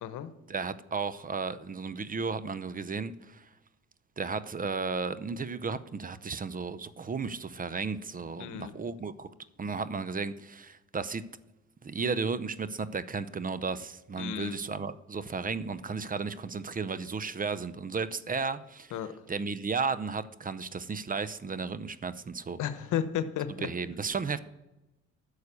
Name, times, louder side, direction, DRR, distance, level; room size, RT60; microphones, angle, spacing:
voice 1, 0.5-3.5 4.2-9.3 9.6-11.2 11.8-19.0 19.3-22.6 23.6-24.4, right 4 dB, 30° right, 15 dB, 0.6 m, -34 dB
voice 2, 8.4-8.7 14.2-14.6 18.9-19.1 22.6-23.7, left 9 dB, 80° left, 12 dB, 1.0 m, -33 dB
9.6 x 6.5 x 8.3 m, 0.96 s
cardioid pair, 90°, 30 cm